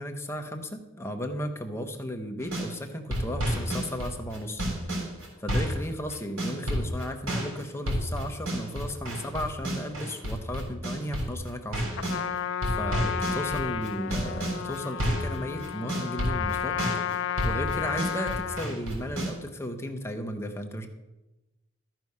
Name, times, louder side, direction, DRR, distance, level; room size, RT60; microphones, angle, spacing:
voice 1, 0.0-4.6 5.4-11.8 12.6-16.8 17.4-20.9, equal, 10° left, 4 dB, 0.7 m, -35 dB
sound 1, 2.4-2.7 3.1-12.2 12.6-15.4 15.6-19.3, right 1 dB, 70° right, 3.6 m, -30 dB
Trumpet, 11.9-18.8, left 8 dB, 55° left, 0.3 m, -32 dB
13.0 x 4.7 x 5.4 m, 1.1 s
head